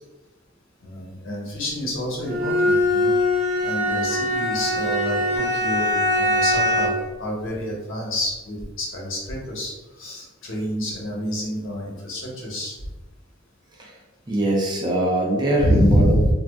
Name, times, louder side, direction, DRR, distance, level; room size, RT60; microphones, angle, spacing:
voice 1, 0.8-3.1 3.6-12.7 15.6-16.3, equal, 75° left, -3 dB, 1.0 m, -27 dB
Bowed string instrument, 2.2-7.1, left 1 dB, 45° right, 0.9 m, -22 dB
voice 2, 14.3-16.2, right 1 dB, 20° right, -2 dB, 0.5 m, -22 dB
2.4 x 2.1 x 3.5 m, 1.1 s
head